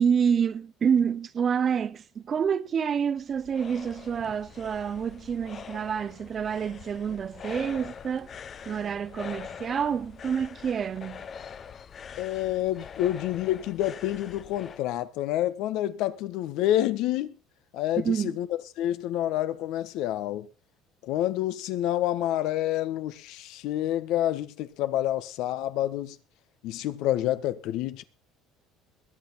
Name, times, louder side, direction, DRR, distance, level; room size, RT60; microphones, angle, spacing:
voice 1, 0.0-8.3 8.7-11.3 18.0-18.4, right 7 dB, 35° right, 0.9 m, -28 dB
sound 1, 3.0-14.8, left 7 dB, 35° left, 0.9 m, -44 dB
voice 2, 12.2-17.3 17.7-18.5 18.8-20.5 21.0-26.2 26.6-28.0, left 13 dB, 70° left, 1.4 m, -28 dB
21.5 x 8.6 x 4.3 m
cardioid pair, 125°, 0 cm